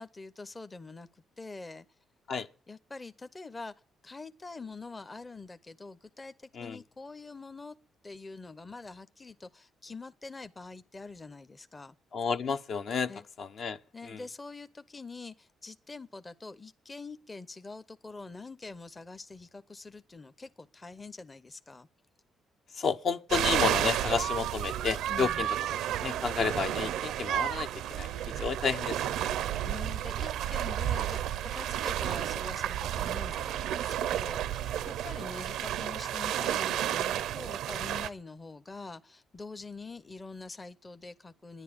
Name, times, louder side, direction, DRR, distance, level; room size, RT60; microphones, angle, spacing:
voice 1, 0.0-1.9 2.7-3.7 4.0-7.7 8.0-12.0 13.1-13.2 13.9-21.9 25.1-25.5 29.6-41.6, left 3 dB, 25° left, 0.7 m, -45 dB
voice 2, 12.1-13.1 13.4-13.8 14.0-14.2 22.7-25.5 26.0-28.1 28.4-29.3, left 5 dB, 55° left, 0.8 m, -31 dB
sound 1, 23.3-38.1, right 11 dB, 85° right, 0.5 m, -31 dB
11.0 x 10.5 x 8.6 m
cardioid pair, 90°, 0 cm